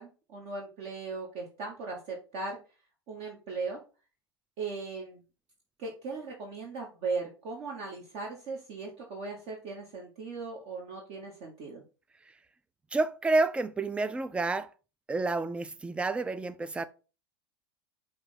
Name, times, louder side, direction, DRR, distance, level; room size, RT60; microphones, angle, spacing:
voice 1, 0.0-2.6 3.1-3.8 4.6-5.2 5.8-11.8, right 4 dB, 50° right, 1.1 m, -38 dB
voice 2, 12.9-14.7 15.1-16.9, right 3 dB, 10° right, 0.3 m, -29 dB
4.9 x 2.7 x 3.6 m
figure-of-eight pair, 85°, 13 cm